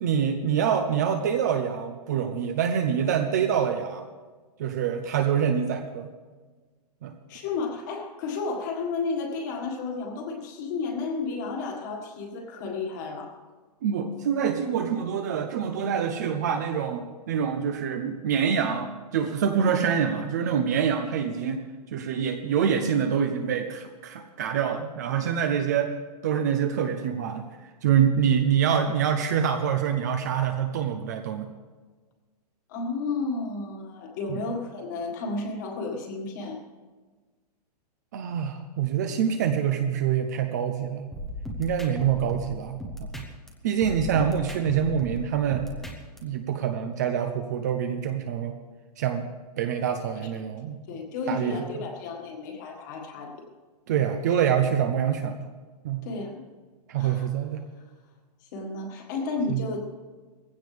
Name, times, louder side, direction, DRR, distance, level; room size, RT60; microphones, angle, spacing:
voice 1, 0.0-4.0 4.6-6.1 7.0-7.1 13.8-25.9 26.2-27.4 27.8-31.5 34.3-34.4 38.1-41.1 41.6-43.2 43.6-45.7 46.2-48.5 49.0-49.3 49.6-50.8 51.3-51.7 53.9-55.5 55.8-56.0 56.9-57.6 59.5-59.6, right 8 dB, 25° right, 7 dB, 0.6 m, -26 dB
voice 2, 7.3-13.4 19.6-19.8 32.7-36.6 50.2-50.3 50.9-53.4 56.0-56.4 56.9-57.3 58.5-59.8, left 4 dB, 30° left, 2 dB, 1.7 m, -32 dB
sound 1, 41.1-43.5 43.8-46.2, equal, ahead, 0.8 m, -37 dB
19.0 x 16.0 x 3.4 m, 1.4 s
hypercardioid pair, 180°, 21 cm